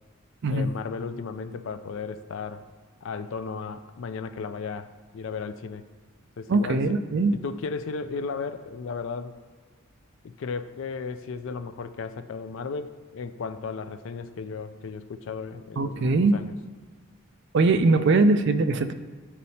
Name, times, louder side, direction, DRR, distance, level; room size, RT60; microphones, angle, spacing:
voice 1, 0.5-2.6 3.0-4.9 5.1-5.8 6.4-6.8 7.4-9.4 10.2-16.5, left 5 dB, 60° left, 11 dB, 0.4 m, -35 dB
voice 2, 6.5-7.3 15.8-16.4 17.5-18.9, right 3 dB, 55° right, 9 dB, 0.4 m, -21 dB
11.0 x 4.2 x 2.8 m, 1.5 s
head